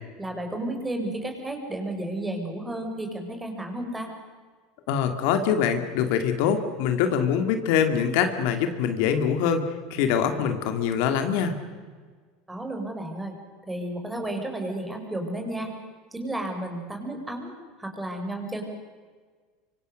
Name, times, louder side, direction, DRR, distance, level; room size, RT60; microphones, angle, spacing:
voice 1, 0.2-4.1 12.5-13.4 13.6-15.7 16.1-17.5 17.8-18.6, right 1 dB, 10° right, 4 dB, 4.9 m, -32 dB
voice 2, 4.9-11.5, left 7 dB, 70° left, 7 dB, 2.4 m, -24 dB
25.5 x 24.5 x 6.5 m, 1.5 s
supercardioid pair, 125°, 0 cm